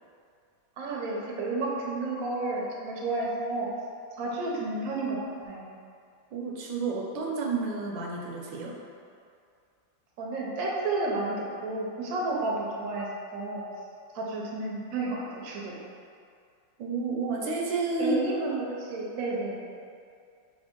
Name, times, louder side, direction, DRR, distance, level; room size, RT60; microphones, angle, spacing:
voice 1, 0.8-3.7 4.2-5.7 10.2-13.6 14.1-15.7 18.0-19.7, right 2 dB, 60° right, -3 dB, 0.9 m, -31 dB
voice 2, 6.3-8.7 16.8-18.2, right 3 dB, 80° right, -1 dB, 1.3 m, -30 dB
3.4 x 3.0 x 4.3 m, 2.4 s
omnidirectional pair, 2.1 m